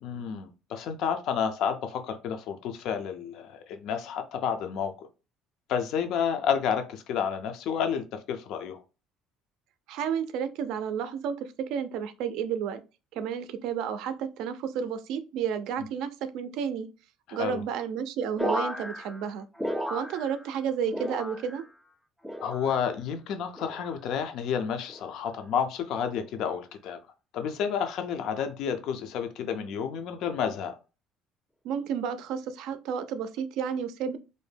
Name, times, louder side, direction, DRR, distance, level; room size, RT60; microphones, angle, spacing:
voice 1, 0.0-4.9 5.7-8.8 17.3-17.6 22.4-27.0 27.3-30.8, left 7 dB, 65° left, 0.4 m, -30 dB
voice 2, 9.9-12.8 13.1-16.9 17.3-19.5 19.9-21.7 31.6-34.2, right 7 dB, 70° right, 0.3 m, -31 dB
sound 1, 18.4-20.6 20.9-21.7 22.2-22.9 23.6-24.0 24.9-25.3 26.2-26.5, equal, 5° left, 0.4 m, -35 dB
2.6 x 2.1 x 3.2 m
supercardioid pair, 100°, 0 cm